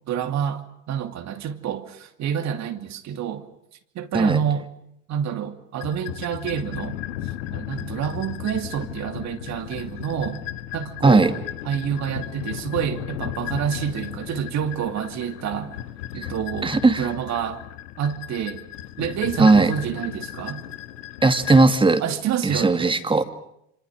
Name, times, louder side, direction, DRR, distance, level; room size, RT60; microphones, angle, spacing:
voice 1, 0.1-3.4 3.9-4.7 5.1-7.0 7.5-10.4 10.7-11.3 11.7-15.8 16.1-17.6 18.0-18.6 19.0-20.6 22.0-22.9, right 9 dB, 50° right, 2.7 m, -28 dB
sound 1, 5.8-21.6, left 12 dB, 85° left, 1.6 m, -35 dB
voice 2, 11.0-11.3 16.2-16.3 16.6-17.1 19.4-19.7 21.2-22.0 22.4-23.2, right 3 dB, 15° right, 2.5 m, -17 dB
27.0 x 26.0 x 6.3 m
supercardioid pair, 95°, 36 cm